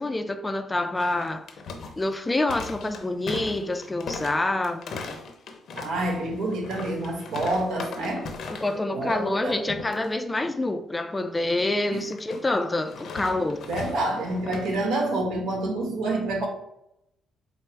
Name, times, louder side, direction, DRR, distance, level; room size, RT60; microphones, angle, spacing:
voice 1, 0.0-1.5 2.0-5.0 8.5-13.6, left 2 dB, 15° left, 0.4 m, -27 dB
sound 1, 1.0-8.8 9.1-9.4 9.7-10.1 12.1-14.8, left 4 dB, 65° left, 0.6 m, -38 dB
voice 2, 5.8-8.3 8.9-9.6 11.9-12.1 13.7-16.5, right 2 dB, 80° right, 1.0 m, -28 dB
4.4 x 2.0 x 4.5 m
cardioid pair, 90°, 0 cm